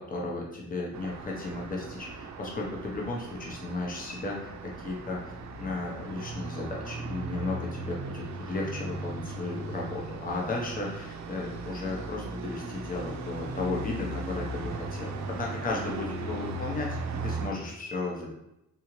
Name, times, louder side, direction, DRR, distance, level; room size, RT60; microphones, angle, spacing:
voice 1, 0.0-5.2 5.6-17.0 17.2-18.3, left 2 dB, 25° left, -2 dB, 0.8 m, -34 dB
Traffic noise roadway noise, 0.9-17.5, right 2 dB, 60° right, 0.5 m, -38 dB
3.7 x 2.7 x 3.0 m, 0.87 s
wide cardioid pair, 145°, 31 cm